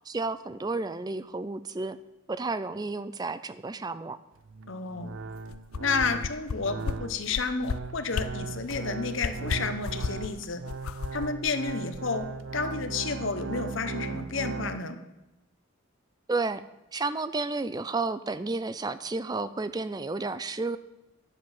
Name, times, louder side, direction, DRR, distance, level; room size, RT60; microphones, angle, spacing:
voice 1, 0.1-2.0 2.3-4.2 16.3-16.6 16.9-20.8, right 3 dB, 20° right, 14 dB, 0.3 m, -31 dB
sound 1, 4.4-14.8, right 4 dB, 70° right, 0.5 m, -38 dB
voice 2, 4.7-5.1 5.8-10.6 11.1-12.3 12.5-15.0, left 4 dB, 65° left, 8 dB, 0.9 m, -31 dB
sound 2, 5.5-6.5 6.8-7.0 7.3-7.8 8.1-8.3 8.7-8.8 9.2-10.3 10.7-12.3 12.6-12.7, left 5 dB, 90° left, 0.5 m, -33 dB
10.0 x 7.5 x 6.0 m, 0.97 s
head